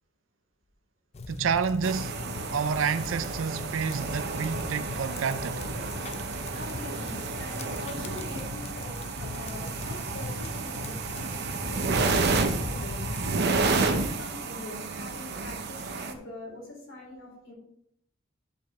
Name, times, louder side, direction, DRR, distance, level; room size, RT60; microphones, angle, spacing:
sound 1, 1.1-13.4, left 2 dB, 35° left, 0.5 m, -39 dB
voice 1, 1.3-2.2 2.5-5.6, right 6 dB, 85° right, 0.5 m, -29 dB
sound 2, 1.8-16.1, right 3 dB, 55° right, 0.8 m, -31 dB
voice 2, 6.5-12.1 12.6-13.0 13.5-17.5, left 2 dB, 80° left, 3.9 m, -43 dB
10.5 x 6.6 x 3.3 m
head